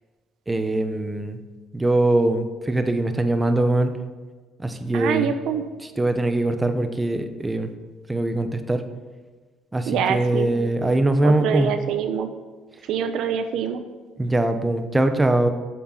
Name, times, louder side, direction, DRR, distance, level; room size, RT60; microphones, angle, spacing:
voice 1, 0.5-1.4 1.7-3.9 4.6-5.3 6.0-7.7 8.1-8.8 9.7-11.7 14.2-15.5, right 2 dB, 15° right, 8 dB, 1.0 m, -22 dB
voice 2, 4.9-5.6 9.9-10.5 11.2-12.3 12.8-13.8, right 8 dB, 75° right, 8 dB, 0.8 m, -25 dB
9.3 x 7.3 x 5.7 m, 1.4 s
supercardioid pair, 75°, 0 cm